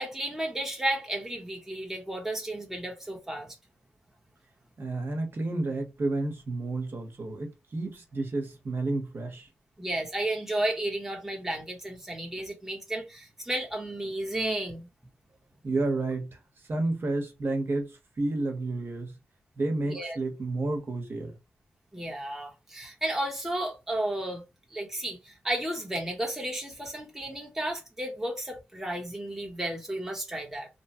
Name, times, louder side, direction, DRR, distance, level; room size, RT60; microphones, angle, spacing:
voice 1, 0.0-3.6 9.8-14.9 19.9-20.2 21.9-24.4 24.7-30.7, right 1 dB, 10° right, 1.0 m, -33 dB
voice 2, 4.8-9.5 15.6-16.4 16.7-19.1 19.6-21.4, right 2 dB, 50° right, 1.1 m, -31 dB
3.1 x 2.2 x 2.9 m
cardioid pair, 60°, 5 cm